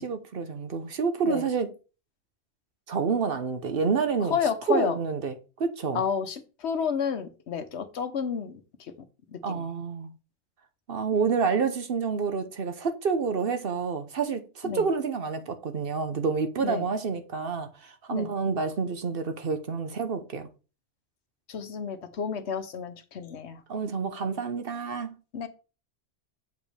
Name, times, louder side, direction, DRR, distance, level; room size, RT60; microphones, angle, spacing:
voice 1, 0.0-1.7 2.9-4.4 4.7-5.3 5.6-6.0 9.4-10.1 10.9-20.5 23.7-25.1, right 5 dB, 55° right, 1.0 m, -28 dB
voice 2, 4.3-5.0 5.9-8.6 9.3-9.6 14.6-14.9 16.6-16.9 18.1-18.3 21.5-23.6 25.3-25.5, left 6 dB, 70° left, 1.1 m, -30 dB
8.0 x 5.1 x 3.3 m
omnidirectional pair, 1.2 m